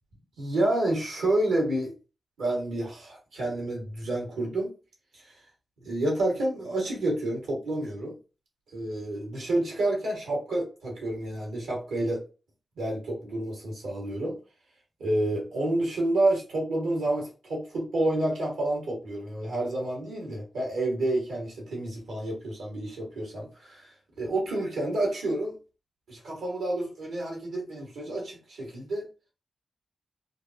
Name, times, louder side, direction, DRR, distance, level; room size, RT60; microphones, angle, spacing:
voice 1, 0.4-1.9 2.4-4.7 5.8-8.1 8.7-12.2 12.8-14.3 15.0-23.9 24.2-25.5 26.1-29.1, right 1 dB, 85° right, -2 dB, 1.7 m, -29 dB
3.8 x 2.4 x 2.8 m, 0.33 s
supercardioid pair, 40°, 0 cm